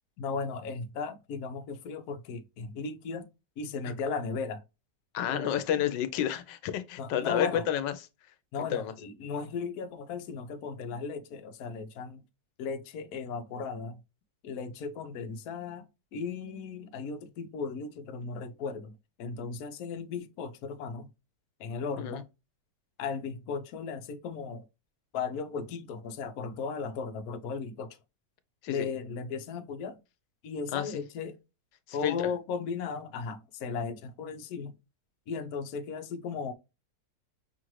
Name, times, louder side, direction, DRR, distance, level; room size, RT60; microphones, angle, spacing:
voice 1, 0.2-3.3 3.6-4.6 5.3-5.6 7.0-7.7 8.5-12.2 12.6-14.0 14.4-15.8 16.1-21.1 21.6-22.3 23.0-24.6 25.1-28.0 28.7-30.0 30.4-31.4 31.9-34.8 35.3-36.5, left 5 dB, 65° left, 1.1 m, -36 dB
voice 2, 5.1-7.9 8.6-8.9 22.0-22.2 28.6-28.9 30.7-31.0 31.9-32.2, left 10 dB, 85° left, 1.3 m, -30 dB
6.3 x 2.5 x 3.0 m
omnidirectional pair, 1.9 m